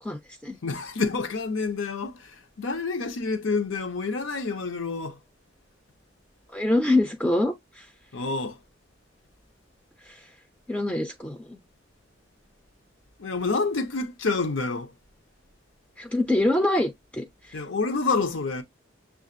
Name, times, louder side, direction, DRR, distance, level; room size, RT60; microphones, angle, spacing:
voice 1, 0.0-0.6 6.5-7.9 10.0-10.3 10.7-11.6 16.0-17.6, left 1 dB, 5° left, 0.3 m, -25 dB
voice 2, 0.6-5.2 8.1-8.6 13.2-14.9 17.5-18.6, left 4 dB, 80° left, 0.7 m, -28 dB
6.5 x 2.3 x 2.5 m
head